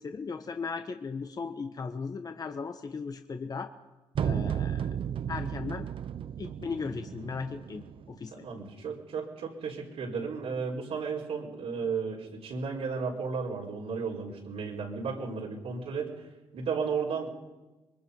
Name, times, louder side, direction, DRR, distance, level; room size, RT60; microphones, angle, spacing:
voice 1, 0.0-3.7 4.2-4.8 5.3-5.9 6.4-8.3, left 5 dB, 35° left, 6 dB, 1.2 m, -37 dB
sound 1, 4.1-8.2, right 9 dB, 55° right, 0.6 m, -34 dB
voice 2, 4.8-5.2 8.3-16.3 16.5-17.3, right 5 dB, 75° right, -4 dB, 4.6 m, -34 dB
25.5 x 21.5 x 5.4 m, 1.1 s
cardioid pair, 90°, 11 cm